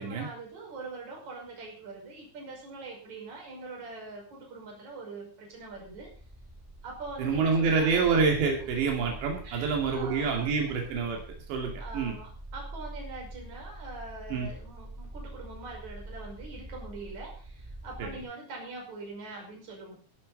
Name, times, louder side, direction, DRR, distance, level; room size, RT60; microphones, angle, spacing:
voice 1, 0.0-6.1 6.8-8.1 8.6-8.7 9.4-10.7 11.8-20.0, right 3 dB, 40° right, 0 dB, 6.6 m, -43 dB
sound 1, 5.6-18.2, right 1 dB, 15° right, 0.8 m, -45 dB
voice 2, 7.2-11.2 11.5-12.1 14.3-14.5 18.0-18.1, right 5 dB, 80° right, 2 dB, 4.7 m, -27 dB
18.0 x 12.0 x 4.1 m, 0.41 s
omnidirectional pair, 5.0 m